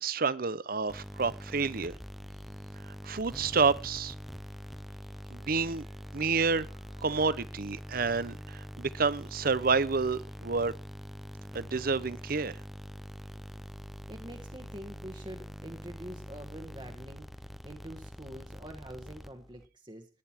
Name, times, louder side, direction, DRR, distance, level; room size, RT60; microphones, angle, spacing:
voice 1, 0.0-1.9 3.0-4.1 5.3-5.8 6.1-6.7 7.0-10.7 11.5-12.6, right 4 dB, 50° right, 0.7 m, -29 dB
sound 1, 0.9-19.7, equal, ahead, 0.6 m, -44 dB
voice 2, 14.1-17.3 17.6-20.1, right 1 dB, 25° right, 1.4 m, -45 dB
16.0 x 10.5 x 4.4 m
head